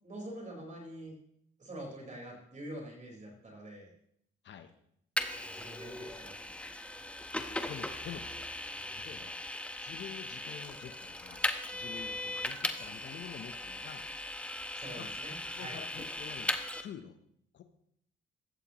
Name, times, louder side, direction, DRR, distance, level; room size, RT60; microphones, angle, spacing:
voice 1, 0.0-1.1 1.6-3.9 5.3-6.7 9.2-9.3 14.8-15.8, right 1 dB, 40° right, -1 dB, 4.6 m, -46 dB
Vehicle, 5.2-16.8, left 1 dB, 5° left, 1.2 m, -38 dB
voice 2, 7.3-8.5 8.9-9.4 9.8-14.1 14.9-15.1 15.5-16.5 16.8-17.2 17.5-17.6, left 9 dB, 65° left, 8 dB, 0.9 m, -47 dB
16.0 x 13.0 x 3.0 m, 0.72 s
cardioid pair, 90°, 20 cm